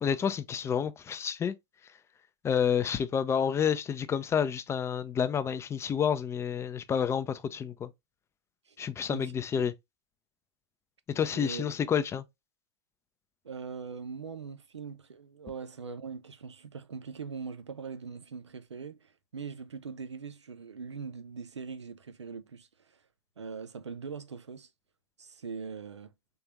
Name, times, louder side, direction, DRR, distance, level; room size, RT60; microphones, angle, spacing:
voice 1, 0.0-1.5 2.4-7.9 8.8-9.7 11.1-12.3, left 7 dB, 20° left, 0.5 m, -29 dB
voice 2, 9.1-9.6 11.3-11.7 13.4-23.0 23.4-24.7 25.2-26.1, right 5 dB, 85° right, 0.6 m, -41 dB
3.5 x 3.5 x 2.9 m
hypercardioid pair, 100°, 14 cm